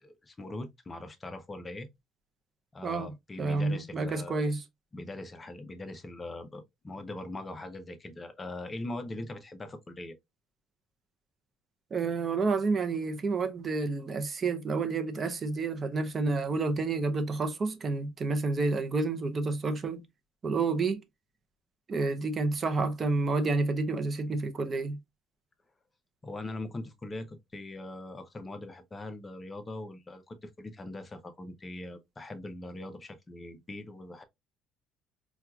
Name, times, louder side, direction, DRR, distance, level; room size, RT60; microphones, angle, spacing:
voice 1, 0.0-1.9 2.7-4.4 4.9-10.2 26.2-34.2, left 2 dB, 20° left, 0.6 m, -41 dB
voice 2, 2.8-4.6 11.9-20.0 20.4-21.0 21.9-25.0, right 3 dB, 30° right, 0.6 m, -29 dB
4.3 x 2.3 x 2.3 m
cardioid pair, 120°, 0 cm